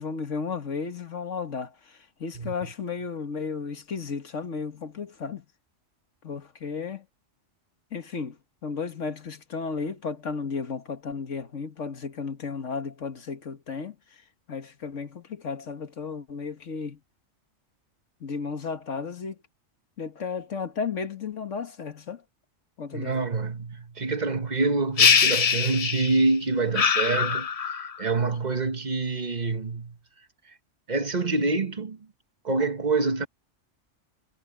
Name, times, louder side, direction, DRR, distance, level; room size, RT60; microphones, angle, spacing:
voice 1, 0.0-5.5 6.2-7.1 7.9-8.4 8.6-14.0 14.5-17.0 18.2-19.4 20.0-22.2 22.8-23.2, left 5 dB, 85° left, 1.9 m, -34 dB
voice 2, 22.9-30.0 30.9-32.0 32.4-33.3, right 3 dB, 40° right, 1.4 m, -26 dB
sound 1, 25.0-26.3 26.7-28.0, left 6 dB, 45° left, 0.5 m, -22 dB
omnidirectional pair, 1.2 m